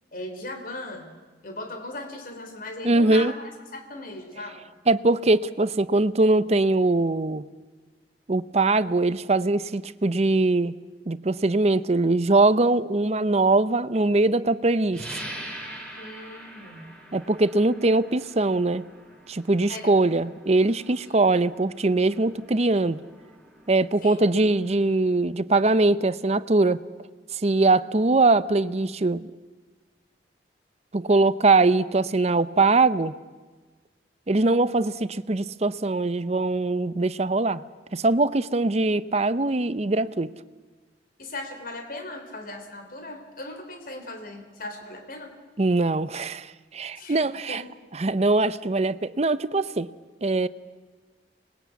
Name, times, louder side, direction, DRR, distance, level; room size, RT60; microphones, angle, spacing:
voice 1, 0.1-1.1 1.4-4.6 16.0-16.9 19.7-20.0 24.0-24.2 41.2-45.3 47.0-47.6, left 2 dB, 55° left, 5 dB, 3.3 m, -38 dB
voice 2, 2.8-3.3 4.9-7.4 8.3-10.7 11.1-15.2 17.1-18.8 19.3-23.0 23.7-26.8 27.3-29.3 30.9-33.1 34.3-37.6 37.9-40.3 45.6-47.6 48.0-49.9 50.2-50.5, right 2 dB, 35° right, 15 dB, 0.7 m, -22 dB
sound 1, 14.9-25.2, right 1 dB, 5° left, 4.6 m, -44 dB
26.0 x 20.5 x 8.2 m, 1.4 s
head